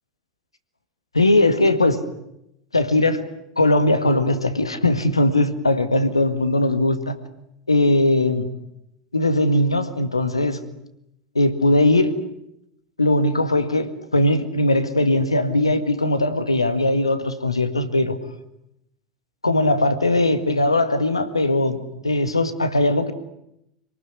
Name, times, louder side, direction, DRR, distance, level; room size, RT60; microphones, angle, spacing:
voice 1, 1.1-2.0 2.7-3.2 3.6-7.2 7.7-8.4 9.1-10.6 11.4-12.1 13.0-18.2 19.4-23.1, left 2 dB, 90° left, 10 dB, 1.9 m, -19 dB
27.0 x 19.5 x 9.7 m, 0.82 s
figure-of-eight pair, 80°, 3 cm